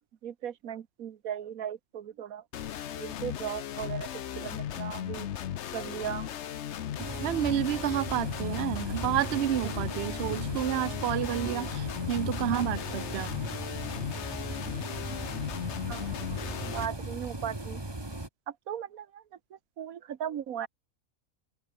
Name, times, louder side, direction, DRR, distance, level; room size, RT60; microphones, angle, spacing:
voice 1, 0.2-2.4 3.0-4.1 4.4-5.3 5.7-6.3 9.6-9.7 11.2-11.6 12.5-12.6 15.8-17.8 18.5-19.2 19.5-20.7, right 9 dB, 85° right, 1.5 m, -38 dB
sound 1, 2.5-16.9, left 10 dB, 60° left, 1.0 m, -36 dB
sound 2, 7.0-18.3, right 2 dB, 20° right, 2.0 m, -38 dB
voice 2, 7.1-13.4, right 11 dB, 55° right, 0.9 m, -30 dB
open air
omnidirectional pair, 1.4 m